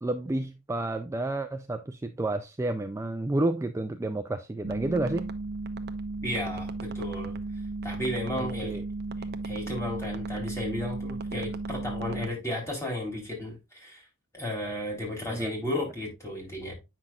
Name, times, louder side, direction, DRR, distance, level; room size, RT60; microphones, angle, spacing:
voice 1, 0.0-5.3 8.4-8.8 15.3-15.5, right 2 dB, 15° right, 0.4 m, -30 dB
sound 1, 4.6-12.3, right 3 dB, 50° right, 0.7 m, -35 dB
voice 2, 6.2-7.3 7.8-8.8 9.4-14.1 14.3-16.7, left 1 dB, 15° left, 3.2 m, -33 dB
8.6 x 6.0 x 2.3 m
head